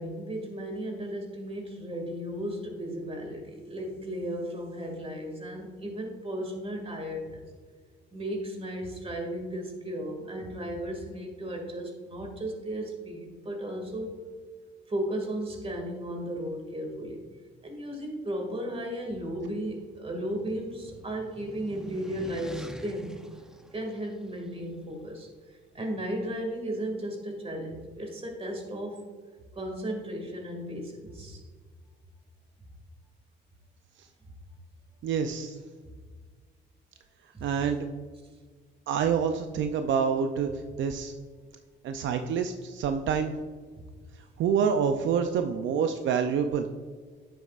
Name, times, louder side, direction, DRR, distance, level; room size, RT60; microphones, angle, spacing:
voice 1, 0.0-7.4 8.1-14.2 14.9-17.2 17.6-23.2 23.7-25.3 25.7-29.0 29.6-31.4 37.3-37.4, right 1 dB, 30° right, 2 dB, 2.2 m, -35 dB
sound 1, 19.6-24.5, right 1 dB, 5° right, 0.6 m, -46 dB
voice 2, 35.0-35.6 37.4-37.9 38.9-40.5 40.8-41.1 41.8-43.3 44.4-46.7, right 7 dB, 70° right, 7 dB, 0.5 m, -27 dB
9.5 x 7.7 x 2.5 m, 1.5 s
cardioid pair, 90°, 20 cm